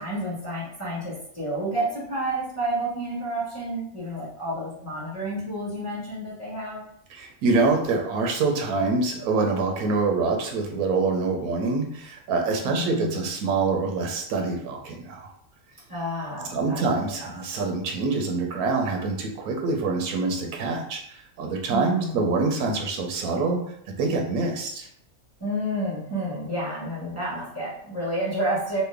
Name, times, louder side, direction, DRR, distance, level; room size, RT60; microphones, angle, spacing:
voice 1, 0.0-6.8 12.6-13.2 15.9-16.8 21.7-22.2 25.4-28.8, right 1 dB, 10° left, -7 dB, 1.0 m, -30 dB
voice 2, 7.1-15.3 16.5-24.9, right 3 dB, 85° right, 2 dB, 1.1 m, -25 dB
3.2 x 2.1 x 3.3 m, 0.67 s
omnidirectional pair, 1.5 m